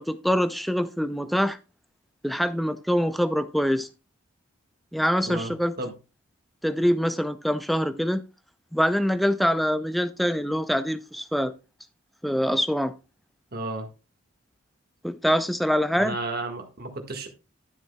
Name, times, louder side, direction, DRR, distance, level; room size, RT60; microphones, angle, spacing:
voice 1, 0.0-1.6 2.2-3.9 4.9-5.7 6.6-8.2 8.7-11.5 12.2-12.9 15.0-16.2, equal, ahead, 0.4 m, -24 dB
voice 2, 5.3-5.9 13.5-13.9 16.0-17.3, right 2 dB, 45° right, 1.7 m, -33 dB
12.0 x 7.4 x 2.2 m
head